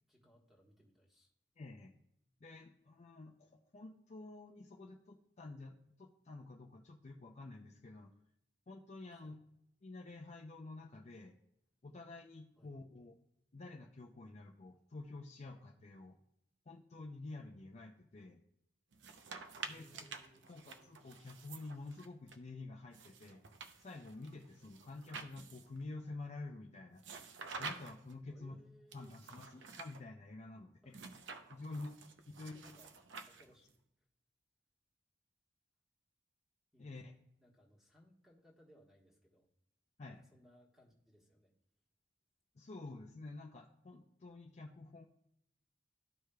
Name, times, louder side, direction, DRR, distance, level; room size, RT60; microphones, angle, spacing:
voice 1, 0.1-1.3 9.1-9.4 12.6-12.7 19.7-20.5 28.3-29.3 30.8-31.2 32.1-32.9 33.2-33.7 36.7-36.9 37.4-39.5 40.1-41.5, equal, ahead, -1 dB, 1.3 m, -65 dB
voice 2, 1.6-1.9 2.4-8.1 8.7-9.4 9.8-11.3 11.8-13.2 13.5-16.2 16.7-18.4 19.7-20.0 20.5-23.4 23.8-27.0 27.6-28.5 28.9-30.9 31.5-31.9 32.3-32.6 36.8-37.1 40.0-40.2 42.6-45.1, left 2 dB, 35° left, 2 dB, 0.5 m, -49 dB
sound 1, 18.9-22.4 22.9-25.8 27.0-28.1 28.9-30.0 30.9-33.7, right 4 dB, 75° right, 0.7 m, -50 dB
13.0 x 4.8 x 2.2 m, 0.78 s
head